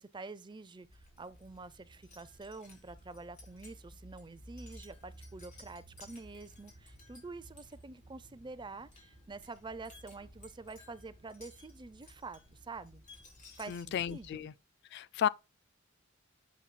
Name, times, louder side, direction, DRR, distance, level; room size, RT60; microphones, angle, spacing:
voice 1, 0.0-13.0 13.5-14.5, right 3 dB, 20° right, 0.5 m, -47 dB
Wind chime, 0.8-14.5, equal, 40° left, 3.2 m, -55 dB
voice 2, 13.7-14.5 14.9-15.3, left 9 dB, 55° left, 0.3 m, -33 dB
8.3 x 7.2 x 2.2 m
head